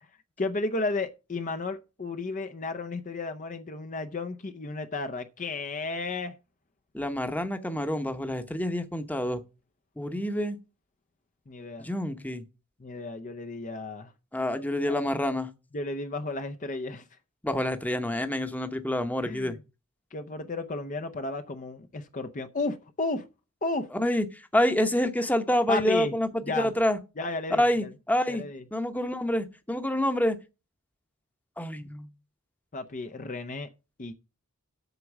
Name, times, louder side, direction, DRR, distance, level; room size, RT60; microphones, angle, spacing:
voice 1, 0.4-6.3 11.5-11.9 12.8-14.1 14.9-15.0 15.7-17.0 19.2-19.6 20.1-23.3 23.6-23.9 25.7-26.1 26.4-26.7 27.2-27.9 28.3-28.6 32.7-33.7 34.0-34.1, left 3 dB, 35° left, 0.6 m, -33 dB
voice 2, 6.9-9.4 10.0-10.6 11.8-12.4 14.3-15.5 17.4-19.5 23.9-24.3 24.5-26.3 26.6-27.0 27.6-28.4 28.7-30.4 31.6-32.1, left 1 dB, 5° left, 0.9 m, -27 dB
8.1 x 6.0 x 7.2 m
head